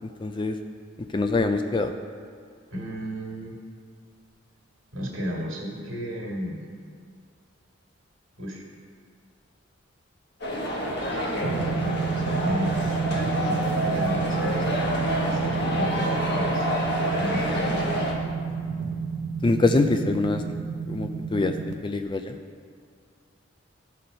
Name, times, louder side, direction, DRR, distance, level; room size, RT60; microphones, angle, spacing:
voice 1, 0.0-0.6 1.0-1.9 19.4-20.4 20.9-22.4, left 3 dB, 25° left, 7 dB, 0.3 m, -24 dB
voice 2, 2.7-3.5 4.9-6.7 8.4-8.6 11.5-15.0 15.3-16.6 17.1-18.1, equal, 80° right, -2 dB, 1.9 m, -33 dB
sound 1, 10.4-18.1, equal, 55° left, 1.3 m, -28 dB
sound 2, 11.4-21.7, right 5 dB, 60° right, 0.6 m, -30 dB
13.0 x 4.4 x 5.2 m, 2.2 s
head